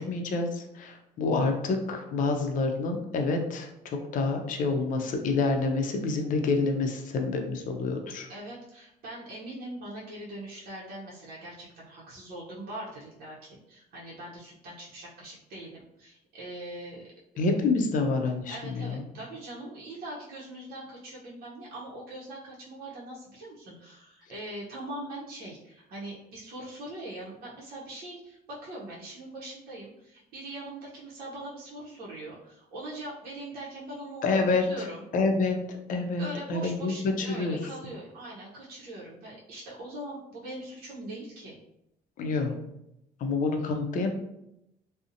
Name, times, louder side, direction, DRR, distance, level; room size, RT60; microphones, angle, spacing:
voice 1, 0.0-8.3 17.4-19.0 34.2-34.9 35.1-36.2 36.5-36.9 37.2-37.6 42.2-42.6 43.2-44.1, left 3 dB, 50° left, 3 dB, 0.5 m, -28 dB
voice 2, 8.3-17.1 18.5-35.0 36.2-41.6, right 1 dB, 60° right, -5 dB, 0.7 m, -42 dB
2.6 x 2.0 x 2.5 m, 0.83 s
cardioid pair, 110°, 17 cm